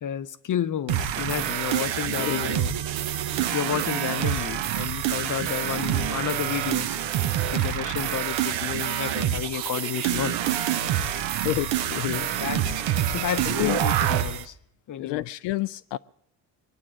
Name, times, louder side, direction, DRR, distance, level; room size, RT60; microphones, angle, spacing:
voice 1, 0.0-2.7 3.0-3.3 3.5-7.0 7.5-10.4 12.4-12.8 13.1-14.6 14.9-15.2, left 9 dB, 45° left, 0.8 m, -31 dB
Dubstep loop, 0.9-14.4, right 10 dB, 75° right, 1.0 m, -27 dB
voice 2, 2.2-2.5 11.3-12.4 13.5-13.8 15.0-16.0, left 17 dB, 70° left, 0.5 m, -29 dB
22.0 x 8.6 x 7.5 m
supercardioid pair, 75°, 45 cm